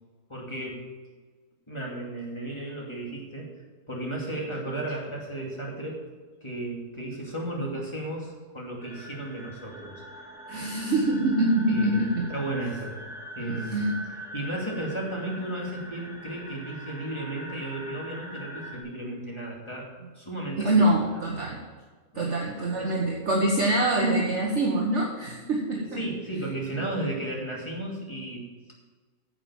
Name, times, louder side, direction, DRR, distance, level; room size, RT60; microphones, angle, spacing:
voice 1, 0.3-0.9 1.7-3.5 3.9-6.0 6.4-10.0 10.5-10.7 11.7-13.0 13.3-13.8 14.3-19.9 20.1-20.8 22.1-22.3 22.6-23.0 25.4-28.7, right 1 dB, 15° left, -2 dB, 2.5 m, -34 dB
sound 1, 8.8-18.8, equal, ahead, 1.6 m, -42 dB
voice 2, 10.5-12.2 13.5-14.1 20.6-21.6 22.1-26.0, right 1 dB, 45° right, -1 dB, 1.6 m, -25 dB
10.5 x 7.6 x 7.2 m, 1.4 s
omnidirectional pair, 1.8 m